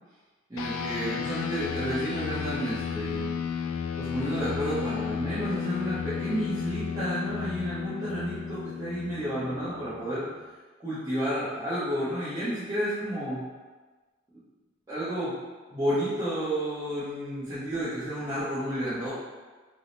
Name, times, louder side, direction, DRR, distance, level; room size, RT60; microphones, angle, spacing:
voice 1, 0.5-3.2 4.0-10.2 10.8-13.4 14.9-15.3 15.7-19.1, equal, 15° right, -15 dB, 0.8 m, -31 dB
sound 1, 0.6-10.3, left 7 dB, 75° left, 0.3 m, -33 dB
4.7 x 2.1 x 2.6 m, 1.3 s
head